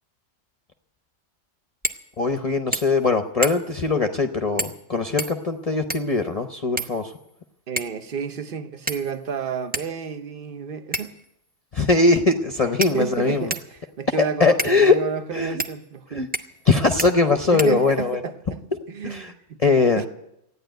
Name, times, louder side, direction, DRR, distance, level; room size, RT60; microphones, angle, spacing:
sound 1, 1.8-2.1 2.4-2.5 2.7-3.1 3.4-3.8 4.6-4.8 5.2-6.2 6.8-7.3 7.8-8.0 8.9-9.3 9.7-9.9 10.9-11.3 12.1-12.2 12.8-13.7 14.6-14.8 15.6-15.7 16.3-16.7 17.0-17.1 17.6-18.1, right 1 dB, 10° right, 0.6 m, -30 dB
voice 1, 2.2-7.1 11.7-13.5 14.2-15.0 15.3-15.6 16.1-16.3 16.6-18.2 19.0-19.3 19.6-20.0, left 3 dB, 40° left, 0.7 m, -21 dB
voice 2, 7.7-11.1 12.9-13.5 14.0-16.3 17.3-18.6 18.9-19.6 20.0-20.1, right 6 dB, 55° right, 1.0 m, -30 dB
14.0 x 9.7 x 9.1 m
omnidirectional pair, 1.2 m